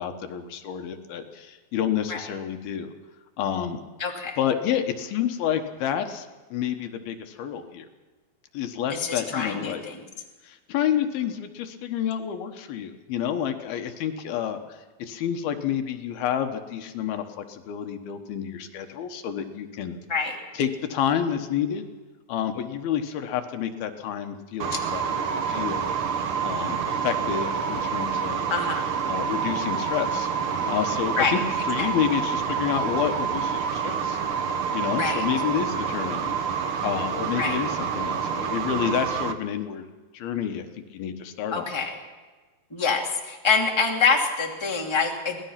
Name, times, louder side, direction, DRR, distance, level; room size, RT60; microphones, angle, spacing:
voice 1, 0.0-2.9 3.4-3.8 4.4-7.9 8.5-9.8 10.4-20.0 20.5-21.9 22.3-25.0 25.3-25.9 26.4-28.5 29.1-30.3 30.7-31.4 31.6-34.2 34.7-36.3 36.8-39.9 40.1-40.7 40.9-41.7, left 9 dB, 80° left, 7 dB, 3.1 m, -29 dB
voice 2, 4.0-4.4 8.9-10.0 20.1-20.4 24.7-24.8 28.5-28.9 31.2-31.3 31.8-31.9 35.0-35.2 37.4-37.6 41.5-42.0 42.7-45.4, left 5 dB, 10° left, 0 dB, 2.1 m, -25 dB
sound 1, 24.6-39.3, right 6 dB, 85° right, 1.2 m, -27 dB
25.5 x 18.0 x 5.8 m, 1.3 s
omnidirectional pair, 4.3 m